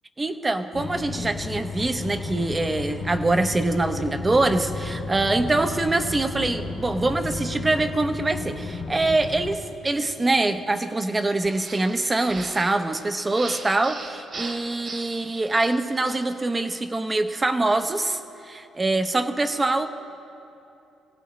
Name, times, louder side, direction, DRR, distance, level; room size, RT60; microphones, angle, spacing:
voice 1, 0.2-18.2 18.5-19.9, right 2 dB, 20° right, 8 dB, 0.9 m, -24 dB
sound 1, 0.7-9.5, left 3 dB, 70° left, 1.7 m, -33 dB
sound 2, 11.4-16.3, right 3 dB, 50° right, 2.0 m, -40 dB
24.5 x 17.0 x 3.2 m, 2.8 s
cardioid pair, 90°, 0 cm